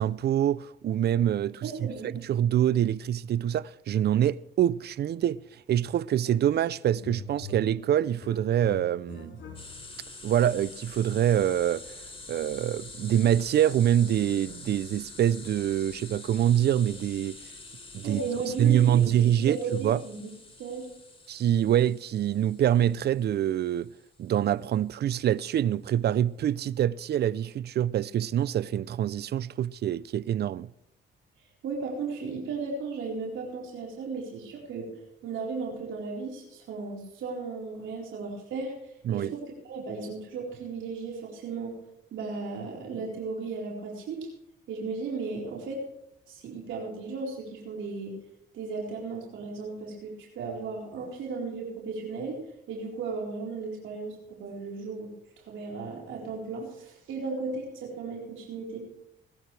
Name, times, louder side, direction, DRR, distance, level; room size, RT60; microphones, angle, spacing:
voice 1, 0.0-9.4 10.2-11.9 12.3-17.4 17.9-18.2 18.6-20.0 21.3-23.9 24.2-30.7 39.1-39.3, right 10 dB, 55° right, 0.5 m, -25 dB
voice 2, 1.6-2.1 18.0-19.1 19.4-20.3 20.6-20.9 31.6-34.9 35.2-38.7 39.1-39.4 39.7-41.7 42.1-44.3 44.7-45.8 46.3-48.1 48.5-55.1 55.5-58.8, right 4 dB, 80° right, 4.4 m, -35 dB
sound 1, 6.3-6.7 7.0-10.1, left 1 dB, 75° left, 4.0 m, -43 dB
sound 2, 9.5-24.1, left 3 dB, 25° left, 3.4 m, -46 dB
21.0 x 12.0 x 3.4 m
cardioid pair, 90°, 20 cm